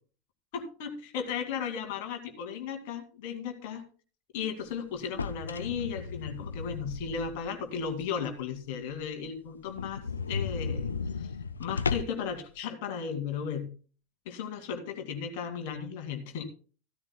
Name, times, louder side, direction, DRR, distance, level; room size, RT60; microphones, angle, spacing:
voice 1, 0.5-3.8 4.3-11.3 11.6-13.7 14.3-16.4, left 7 dB, 55° left, 5 dB, 2.3 m, -35 dB
sound 1, 5.0-7.6 8.0-8.1 8.5-8.6 8.9-9.0 9.2-9.3 9.7-12.3, left 4 dB, 75° left, 0.5 m, -35 dB
15.5 x 13.5 x 2.2 m, 0.39 s
figure-of-eight pair, 80°, 0 cm